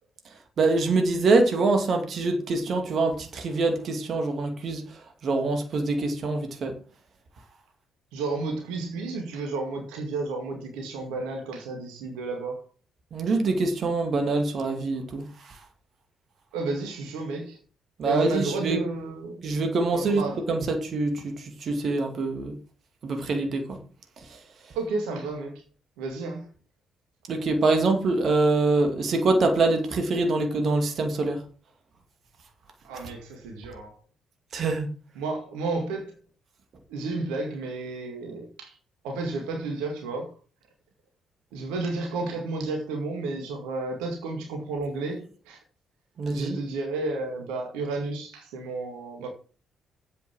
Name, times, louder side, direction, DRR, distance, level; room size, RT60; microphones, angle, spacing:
voice 1, 0.6-6.7 13.1-15.6 18.0-18.8 19.4-20.2 20.5-22.5 23.0-23.8 24.2-24.4 27.3-31.4 34.5-34.9 46.2-46.6, right 3 dB, 55° right, 2.2 m, -25 dB
voice 2, 8.1-12.6 16.5-17.6 18.0-19.5 19.9-20.4 24.7-25.5 26.0-26.4 32.8-34.0 35.2-36.1 36.9-38.8 39.0-40.3 41.5-45.6 46.3-49.3, right 3 dB, 75° right, 2.1 m, -32 dB
8.1 x 7.0 x 6.2 m
hypercardioid pair, 45°, 0 cm